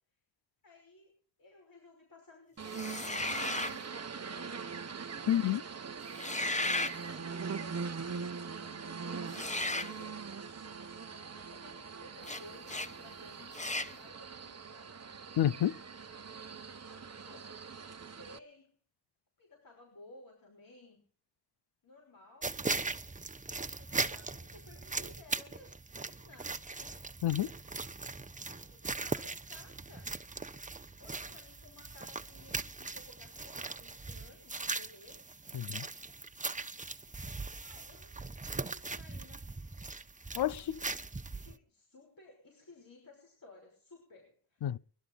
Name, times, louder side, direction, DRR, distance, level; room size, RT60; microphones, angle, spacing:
voice 1, 0.6-4.9 6.2-10.2 10.8-15.1 16.9-17.5 18.0-18.8 19.4-21.1 21.8-22.5 23.5-25.7 26.0-27.1 28.4-30.2 31.0-35.2 37.1-39.5 40.4-44.6, left 2 dB, 55° left, 5.9 m, -58 dB
sound 1, 2.6-18.4, right 5 dB, 40° right, 1.1 m, -42 dB
sound 2, 2.7-3.8 6.1-7.0 9.3-9.9 12.2-12.4 12.7-12.9 13.5-13.9, left 2 dB, 20° left, 0.9 m, -34 dB
voice 2, 5.3-5.6 15.4-15.8 27.2-27.5 35.5-35.9 40.4-40.8 44.6-44.8, left 11 dB, 80° left, 0.6 m, -29 dB
sound 3, 22.4-41.6, right 3 dB, 20° right, 0.9 m, -40 dB
22.0 x 12.5 x 4.0 m
wide cardioid pair, 85°, 39 cm